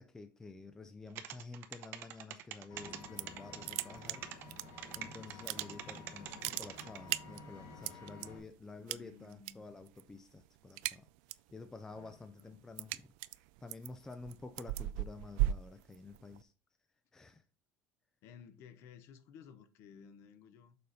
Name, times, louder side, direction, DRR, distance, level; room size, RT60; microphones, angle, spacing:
voice 1, 0.0-4.6 4.9-11.1 11.5-16.5 17.1-17.4, left 3 dB, 10° left, 0.4 m, -50 dB
sound 1, 1.1-7.0, right 11 dB, 40° right, 0.7 m, -45 dB
Vehicle, 2.7-8.4, left 3 dB, 65° left, 3.1 m, -52 dB
sound 2, 2.9-3.4 3.6-5.0 5.3-6.0 6.3-8.3 8.9-9.5 9.8-10.1 10.4-11.5 11.9-16.4, right 15 dB, 75° right, 0.3 m, -37 dB
voice 2, 8.8-9.6 11.9-12.6 18.2-20.8, left 7 dB, 45° left, 0.8 m, -56 dB
6.8 x 5.0 x 4.1 m
cardioid pair, 175°, 6 cm